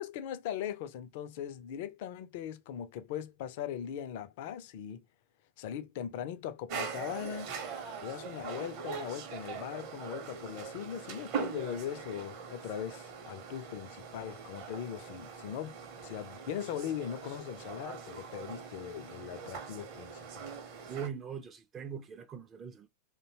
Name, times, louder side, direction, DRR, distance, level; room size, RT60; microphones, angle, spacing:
voice 1, 0.0-5.1 5.6-7.5 8.0-15.8 16.0-20.5, left 9 dB, 50° left, 0.4 m, -40 dB
sound 1, 6.7-21.1, right 6 dB, 45° right, 0.7 m, -42 dB
voice 2, 20.9-22.9, right 7 dB, 25° right, 0.4 m, -41 dB
2.6 x 2.1 x 2.7 m
figure-of-eight pair, 90°, 0 cm